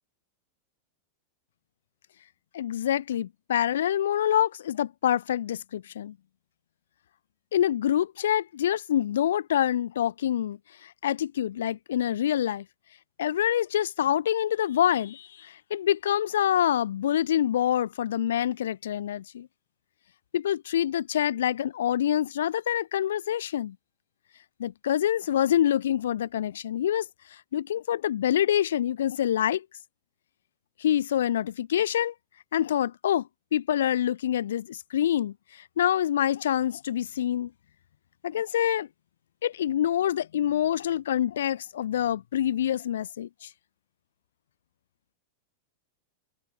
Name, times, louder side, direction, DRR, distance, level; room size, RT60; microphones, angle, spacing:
voice 1, 2.5-6.1 7.5-12.6 13.2-19.5 20.3-23.8 24.6-27.1 27.5-29.6 30.8-32.1 32.5-35.3 35.8-37.5 38.2-38.9 39.4-43.5, left 10 dB, 60° left, 0.4 m, -26 dB
figure-of-eight pair, 90°, 0 cm